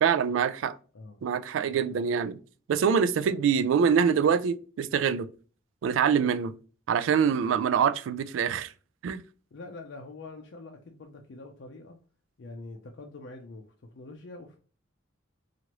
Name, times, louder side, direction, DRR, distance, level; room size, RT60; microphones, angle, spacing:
voice 1, 0.0-0.8 1.2-2.4 2.7-5.3 5.8-6.5 6.9-8.7 9.0-9.2, right 7 dB, 80° right, 0.3 m, -25 dB
voice 2, 9.5-12.0 12.4-14.6, left 2 dB, 65° left, 0.4 m, -45 dB
2.9 x 2.4 x 2.9 m
head